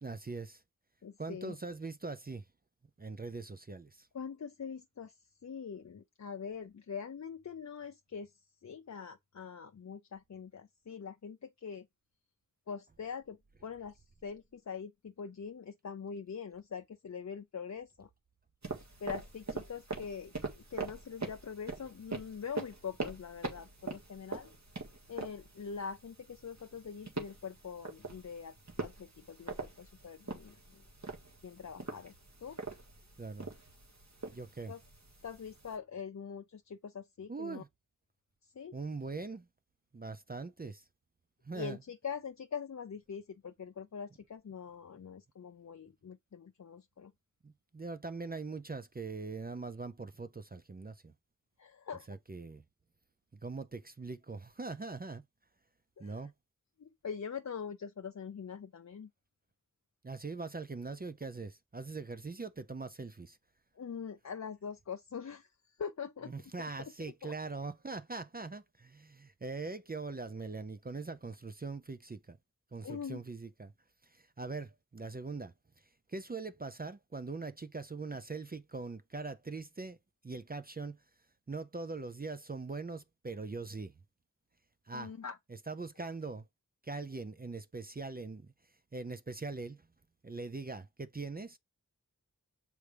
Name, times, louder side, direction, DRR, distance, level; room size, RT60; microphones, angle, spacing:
voice 1, 0.0-0.6 1.2-2.4 3.0-4.1 33.2-33.5 34.3-34.7 37.3-37.7 38.7-39.5 39.9-40.8 41.4-41.8 47.4-51.1 52.1-52.6 53.4-55.2 56.0-56.3 60.0-63.4 66.3-72.4 72.7-73.7 74.0-75.5 76.1-80.0 80.2-81.0 81.5-83.9 84.9-85.1 85.5-86.4 86.8-88.5 88.9-89.8 90.2-91.6, right 3 dB, 25° right, 0.5 m, -42 dB
voice 2, 1.0-1.6 4.1-5.1 5.4-8.3 8.6-11.9 12.7-18.1 19.0-24.5 25.1-30.8 31.4-32.1 32.4-32.6 34.7-34.8 35.2-37.6 38.5-38.8 41.5-47.1 51.6-52.1 56.0-56.3 56.8-59.1 63.8-65.5 65.8-66.3 66.8-67.3 72.8-73.2 84.9-85.4, left 6 dB, 55° left, 0.5 m, -43 dB
sound 1, 18.6-35.8, right 3 dB, 55° right, 1.7 m, -43 dB
6.7 x 4.6 x 3.3 m
wide cardioid pair, 55°, 34 cm